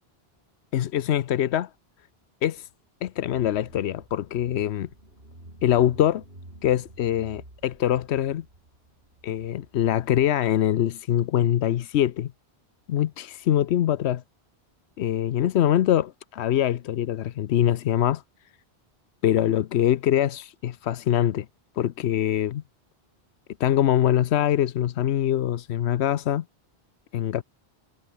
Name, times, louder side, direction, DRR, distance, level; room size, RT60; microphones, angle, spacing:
voice 1, 0.7-1.7 2.4-2.7 3.0-4.9 5.6-6.2 6.6-8.4 9.2-12.3 12.9-14.2 15.0-18.2 19.2-21.5 21.8-22.6 23.6-26.4 27.1-27.4, left 11 dB, 90° left, 0.9 m, -23 dB
Car / Engine, 3.3-10.4, right 1 dB, 65° right, 6.3 m, -50 dB
omnidirectional pair, 1.1 m